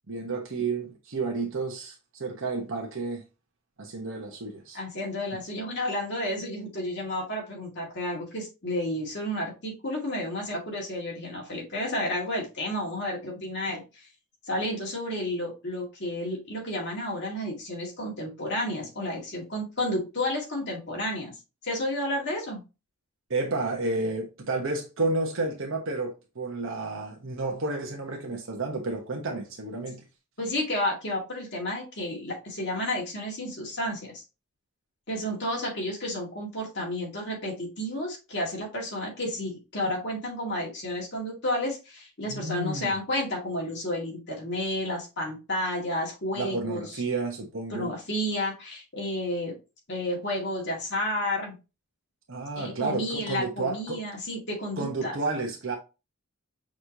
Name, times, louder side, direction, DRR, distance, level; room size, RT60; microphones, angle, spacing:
voice 1, 0.1-3.2 3.8-4.8 23.3-30.0 42.3-43.0 46.3-47.9 52.3-54.0 54.8-55.7, right 3 dB, 60° right, 1.0 m, -31 dB
voice 2, 4.7-14.1 14.4-21.3 21.6-22.6 30.4-34.2 35.1-47.0 47.7-49.6 49.9-51.6 52.6-55.2, left 1 dB, 50° left, 2.0 m, -31 dB
6.1 x 3.2 x 2.7 m
head